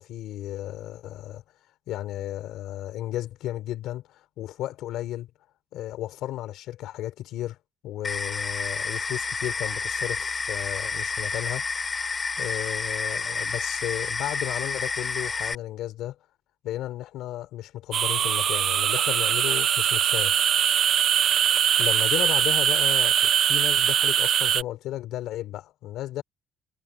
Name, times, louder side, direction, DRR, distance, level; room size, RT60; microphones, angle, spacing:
voice 1, 0.0-1.4 1.9-5.3 5.7-7.6 7.8-11.7 12.4-16.2 16.6-20.4 21.8-26.2, left 14 dB, 90° left, 3.7 m, -34 dB
sound 1, 8.0-15.5, left 4 dB, 35° left, 4.6 m, -30 dB
sound 2, 17.9-24.6, right 9 dB, 65° right, 0.4 m, -22 dB
cardioid pair, 90°, 0 cm